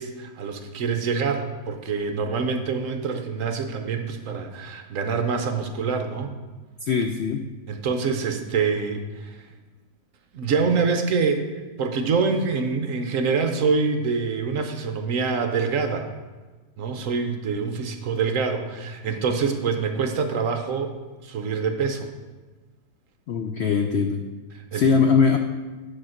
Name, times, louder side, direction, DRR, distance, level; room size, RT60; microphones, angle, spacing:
voice 1, 0.0-6.3 7.7-9.5 10.3-16.1 16.8-20.9 21.2-22.1 24.5-24.9, right 5 dB, 60° right, 5 dB, 1.0 m, -25 dB
voice 2, 6.8-7.4 23.3-24.2 24.7-25.4, left 5 dB, 90° left, 5 dB, 0.5 m, -21 dB
10.0 x 4.3 x 6.4 m, 1.3 s
omnidirectional pair, 1.8 m